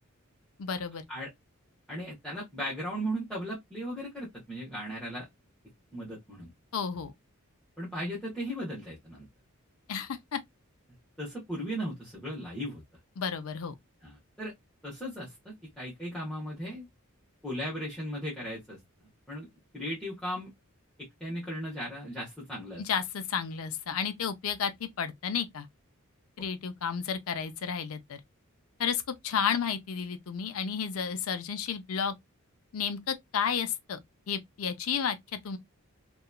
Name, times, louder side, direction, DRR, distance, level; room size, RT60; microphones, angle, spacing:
voice 1, 0.6-1.0 6.7-7.1 9.9-10.4 13.2-13.7 22.8-25.7 26.4-28.2 28.8-32.1 32.7-34.0 34.3-35.2 35.4-35.6, left 7 dB, 70° left, 0.5 m, -32 dB
voice 2, 1.9-5.3 5.9-6.5 7.8-9.3 11.2-12.8 14.0-14.5 14.8-16.9 17.4-18.8 19.3-19.5 19.7-20.5 21.2-22.8, equal, 5° left, 0.9 m, -37 dB
2.8 x 2.3 x 2.2 m
head